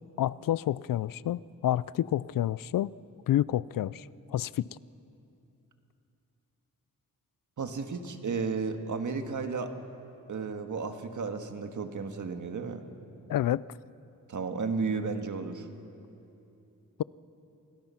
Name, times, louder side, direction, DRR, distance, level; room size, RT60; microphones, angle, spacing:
voice 1, 0.2-2.9 3.3-4.7 13.3-13.6, left 12 dB, 75° left, 21 dB, 0.5 m, -29 dB
voice 2, 7.6-9.7 10.3-12.8 14.3-15.7, right 4 dB, 60° right, 6 dB, 1.8 m, -33 dB
27.5 x 19.5 x 5.8 m, 2.8 s
cardioid pair, 85°, 34 cm